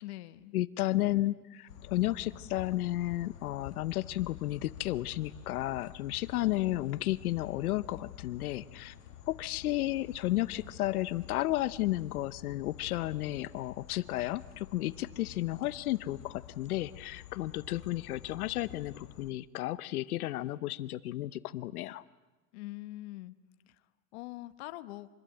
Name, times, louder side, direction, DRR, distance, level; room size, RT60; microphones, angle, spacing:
voice 1, 0.0-0.6 22.5-23.3 23.7-23.8 24.1-25.1, left 18 dB, 50° left, 13 dB, 1.1 m, -43 dB
voice 2, 0.5-8.9 9.3-22.0, left 16 dB, 85° left, 15 dB, 0.9 m, -33 dB
sound 1, 1.7-19.3, left 11 dB, 70° left, 1.6 m, -50 dB
25.0 x 20.5 x 8.8 m, 1.1 s
supercardioid pair, 170°, 43 cm